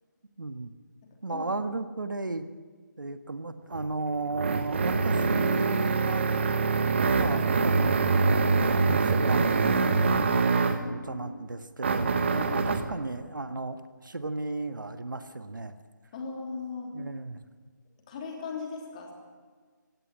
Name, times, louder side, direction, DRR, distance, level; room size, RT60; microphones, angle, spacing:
voice 1, 0.4-0.7 1.2-2.5 3.0-6.2 7.1-9.8 10.5-12.1 12.5-15.7 16.9-17.4, right 3 dB, 80° right, 9 dB, 1.6 m, -35 dB
sound 1, 3.7-10.9 11.8-12.9, right 4 dB, 35° right, 1.3 m, -24 dB
voice 2, 10.6-11.4 12.3-12.7 16.1-16.9 18.1-19.1, left 4 dB, 25° left, 1 dB, 3.2 m, -38 dB
19.0 x 17.0 x 8.9 m, 1.5 s
figure-of-eight pair, 165°, 10 cm